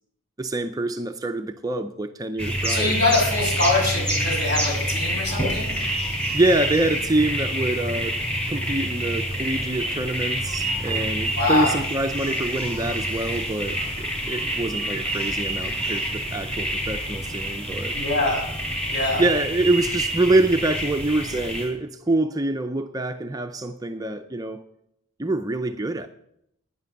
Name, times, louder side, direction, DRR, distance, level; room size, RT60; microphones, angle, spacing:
voice 1, 0.4-3.0 6.3-17.9 19.2-24.6 25.2-26.1, right 2 dB, 15° right, 0.5 m, -25 dB
sound 1, 2.4-21.7, equal, 5° left, 4.1 m, -27 dB
voice 2, 2.7-5.7 11.4-11.8 17.9-18.4 18.9-19.2, left 2 dB, 50° left, 6.0 m, -23 dB
11.0 x 9.9 x 6.7 m
head